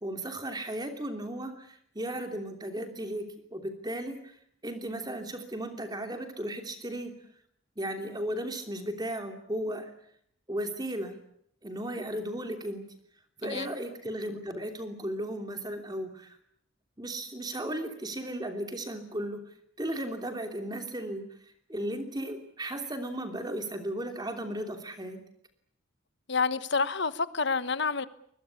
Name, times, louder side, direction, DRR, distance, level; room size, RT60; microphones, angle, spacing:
voice 1, 0.0-3.2 3.5-4.4 4.6-7.1 7.8-9.9 10.5-11.1 11.6-12.9 13.4-16.4 17.0-21.2 21.7-25.2, right 1 dB, 20° right, 3.1 m, -35 dB
voice 2, 26.3-28.1, left 4 dB, 55° left, 1.2 m, -28 dB
24.0 x 21.5 x 8.5 m
head